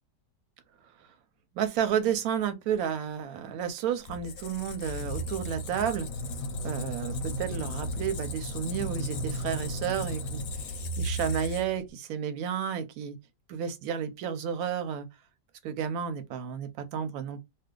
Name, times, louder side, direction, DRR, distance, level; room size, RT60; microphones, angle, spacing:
voice 1, 1.5-6.1 6.6-13.2 13.5-15.1 15.6-17.4, right 8 dB, 70° right, 0.9 m, -31 dB
Squeak, 4.1-11.9, equal, 65° left, 0.9 m, -35 dB
2.6 x 2.3 x 3.6 m
omnidirectional pair, 1.8 m